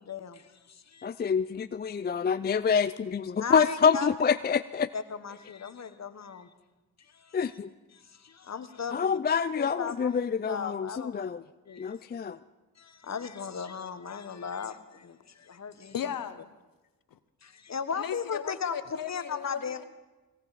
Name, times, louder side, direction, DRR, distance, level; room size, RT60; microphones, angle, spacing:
voice 1, 0.0-1.1 3.4-4.1 4.9-6.5 7.1-7.4 7.9-9.2 9.6-10.1 10.4-11.3 11.7-11.9 12.8-15.9 17.4-18.7 19.1-19.8, left 6 dB, 45° left, 11 dB, 1.2 m, -37 dB
voice 2, 1.0-4.9 7.3-7.7 8.9-11.4 11.8-12.4, left 6 dB, 25° left, 12 dB, 0.4 m, -27 dB
voice 3, 15.9-16.5 17.1-17.2 18.0-19.8, left 9 dB, 65° left, 12 dB, 0.8 m, -36 dB
19.5 x 17.0 x 4.1 m, 1.1 s
cardioid pair, 60°, 37 cm